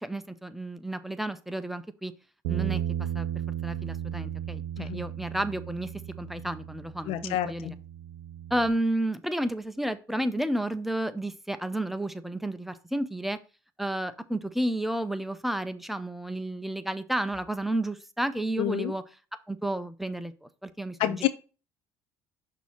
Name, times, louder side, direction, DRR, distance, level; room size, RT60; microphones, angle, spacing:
voice 1, 0.0-2.1 2.5-3.3 3.6-5.9 6.2-7.8 8.5-13.4 13.8-19.0 19.5-21.3, right 1 dB, ahead, 0.7 m, -31 dB
Bass guitar, 2.4-8.7, right 10 dB, 80° right, 0.5 m, -35 dB
voice 2, 7.1-7.7 18.6-18.9 21.0-21.3, left 12 dB, 70° left, 0.7 m, -28 dB
6.1 x 2.9 x 5.6 m
supercardioid pair, 70°, 10 cm